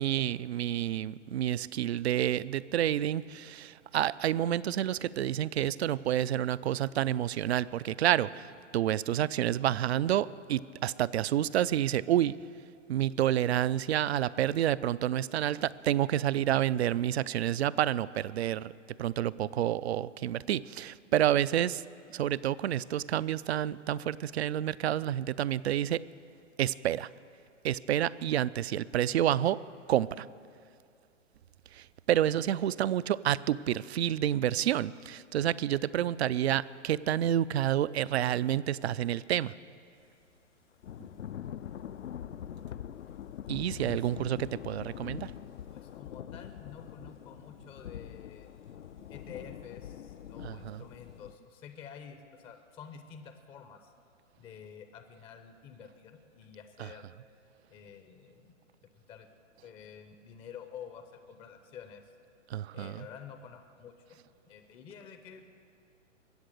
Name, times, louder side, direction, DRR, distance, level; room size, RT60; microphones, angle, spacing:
voice 1, 0.0-12.4 12.9-18.7 19.0-21.8 22.1-26.0 26.6-27.1 27.6-29.6 29.9-30.3 31.7-39.5 43.5-45.3 50.4-50.8 56.8-56.9 62.5-63.1, right 11 dB, 55° right, 18 dB, 0.5 m, -29 dB
Thunder / Rain, 40.8-51.4, left 10 dB, 65° left, 0.6 m, -43 dB
voice 2, 43.8-44.1 45.7-48.5 49.1-53.9 54.4-57.0 57.7-58.5 59.1-59.3 59.6-62.1 62.7-64.2 64.5-65.4, left 7 dB, 15° left, 7 dB, 0.6 m, -49 dB
22.5 x 8.1 x 6.6 m, 2.3 s
hypercardioid pair, 130°, 38 cm